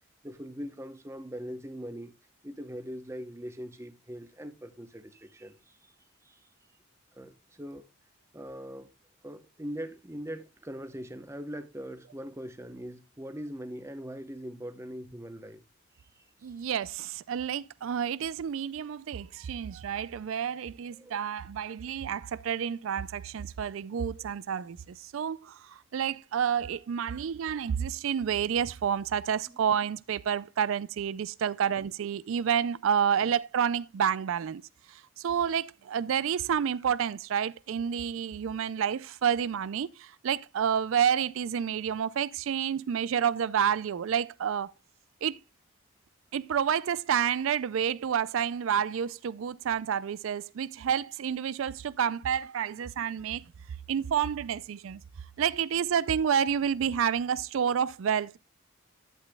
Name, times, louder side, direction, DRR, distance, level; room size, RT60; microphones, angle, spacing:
voice 1, 0.2-2.1 2.4-5.8 6.2-6.4 7.2-7.3 7.6-7.9 8.3-8.9 9.2-15.6 20.9-21.2 29.5-29.6, equal, 15° right, 0.8 m, -41 dB
voice 2, 16.4-34.6 34.9-44.7 45.2-45.4 46.3-53.4 53.9-55.0 55.4-58.4, right 8 dB, 75° right, 0.4 m, -29 dB
12.0 x 8.1 x 2.2 m
head